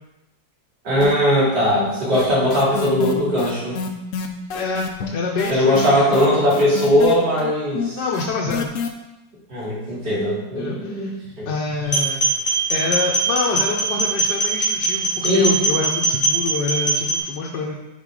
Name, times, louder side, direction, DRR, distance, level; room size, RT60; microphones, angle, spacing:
voice 1, 0.8-3.7 5.5-8.0 9.5-11.5 15.2-15.8, equal, 85° right, -8 dB, 3.0 m, -19 dB
sound 1, 1.0-1.5 1.8-8.9, left 6 dB, 65° left, 0.9 m, -28 dB
voice 2, 4.5-6.1 8.0-8.7 10.6-11.2 11.4-12.3 12.7-17.7, left 4 dB, 90° left, -2 dB, 1.4 m, -26 dB
sound 2, 11.8-17.2, right 3 dB, 15° left, 1.8 m, -21 dB
5.8 x 4.5 x 4.7 m, 0.99 s
omnidirectional pair, 1.8 m